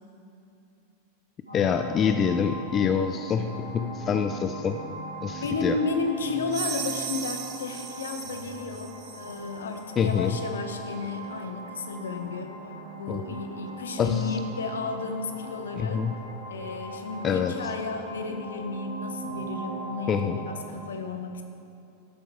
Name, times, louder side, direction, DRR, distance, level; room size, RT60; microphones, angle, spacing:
voice 1, 1.5-4.8 5.2-5.8 10.0-10.4 13.1-13.2 14.0-14.3 15.8-16.1 17.2-17.5 20.1-20.4, left 7 dB, 25° left, 7 dB, 0.4 m, -26 dB
sound 1, 1.5-20.8, right 1 dB, 90° right, 1.9 m, -40 dB
voice 2, 5.4-12.5 13.0-16.1 16.5-21.4, left 4 dB, 65° left, 7 dB, 0.9 m, -33 dB
sound 2, 6.5-9.5, right 9 dB, 40° right, 0.8 m, -37 dB
12.5 x 7.8 x 4.6 m, 2.6 s
figure-of-eight pair, 90°, 0 cm